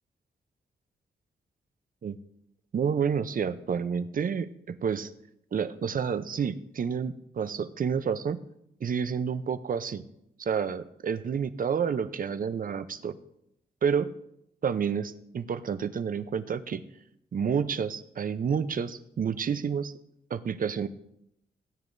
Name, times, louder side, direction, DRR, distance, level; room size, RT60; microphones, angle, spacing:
voice 1, 2.7-5.1 5.5-8.4 8.8-10.0 10.4-13.2 13.8-14.1 14.6-16.8 17.3-19.9 20.3-20.9, right 7 dB, 50° right, 13 dB, 0.6 m, -29 dB
16.5 x 8.9 x 2.6 m, 0.79 s
cardioid pair, 60°, 18 cm